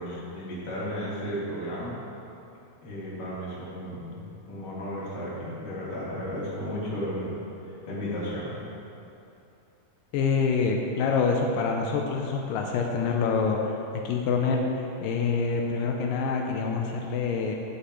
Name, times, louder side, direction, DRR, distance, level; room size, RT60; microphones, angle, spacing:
voice 1, 0.0-2.0 2.8-7.3 7.6-8.6, equal, 40° left, -8 dB, 3.0 m, -34 dB
voice 2, 10.1-17.6, left 5 dB, 90° left, 1 dB, 1.9 m, -26 dB
16.5 x 6.8 x 3.2 m, 2.8 s
omnidirectional pair, 4.7 m